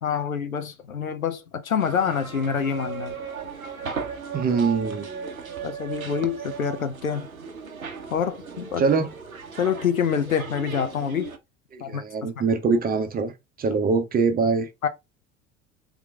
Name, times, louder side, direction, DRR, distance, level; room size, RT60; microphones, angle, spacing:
voice 1, 0.0-3.1 5.6-7.3 8.1-8.8 9.6-11.3 11.8-12.3 14.8-14.9, left 7 dB, 85° left, 0.6 m, -26 dB
sound 1, 1.8-11.4, right 6 dB, 85° right, 0.7 m, -36 dB
voice 2, 4.3-5.1 8.8-9.1 11.7-14.7, right 4 dB, 20° right, 0.7 m, -23 dB
3.7 x 3.0 x 3.4 m
figure-of-eight pair, 70°, 41 cm